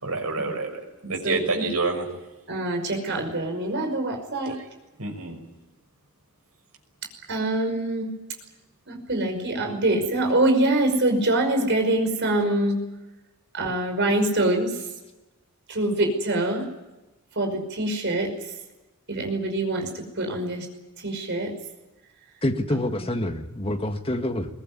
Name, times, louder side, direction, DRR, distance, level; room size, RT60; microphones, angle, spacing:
voice 1, 0.0-2.1 4.5-4.6 5.0-5.4, right 3 dB, 85° right, 4 dB, 6.1 m, -28 dB
voice 2, 1.2-1.6 2.5-4.6 7.3-8.2 8.9-12.8 13.5-14.7 15.7-16.7 17.4-18.3 19.1-20.7 21.0-21.5, right 1 dB, 55° right, 3 dB, 5.5 m, -24 dB
voice 3, 22.4-24.5, left 1 dB, 25° left, 5 dB, 1.8 m, -27 dB
22.0 x 20.0 x 9.6 m, 1.0 s
head